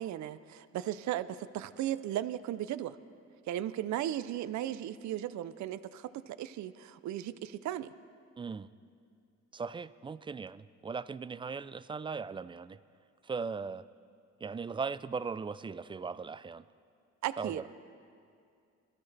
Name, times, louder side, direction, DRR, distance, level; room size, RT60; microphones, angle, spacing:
voice 1, 0.0-3.0 3.5-7.9 17.2-17.6, right 12 dB, 70° right, 14 dB, 0.5 m, -36 dB
voice 2, 8.4-8.7 9.5-12.8 13.2-13.9 14.4-16.7 17.4-17.7, right 5 dB, 15° right, 16 dB, 0.3 m, -38 dB
22.0 x 13.0 x 3.3 m, 2.4 s
cardioid pair, 90°, 30 cm